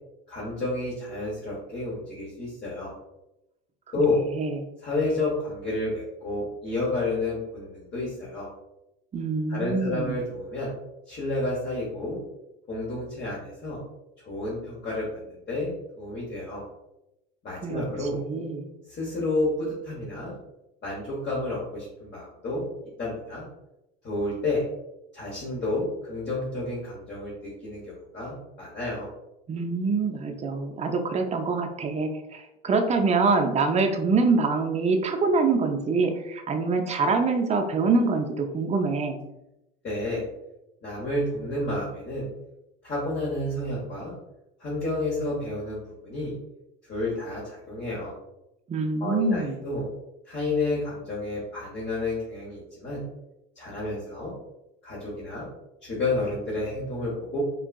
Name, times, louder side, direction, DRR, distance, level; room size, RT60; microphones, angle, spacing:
voice 1, 0.3-2.9 3.9-4.2 4.8-8.5 9.5-10.7 11.1-12.2 12.7-13.8 14.2-16.6 17.4-18.2 18.9-20.3 20.8-22.6 23.0-23.4 24.0-24.6 25.1-29.1 39.8-40.2 40.8-42.3 42.8-44.1 44.6-46.3 46.9-48.1 49.0-49.9 50.3-53.0 53.6-54.3 54.8-55.5 55.8-57.4, left 2 dB, 35° left, -6 dB, 1.1 m, -30 dB
voice 2, 9.1-10.2 17.6-17.8 18.3-18.6 29.5-39.2 48.7-49.6, right 4 dB, 25° right, 4 dB, 0.5 m, -25 dB
3.7 x 2.4 x 2.3 m, 0.89 s
supercardioid pair, 90°, 30 cm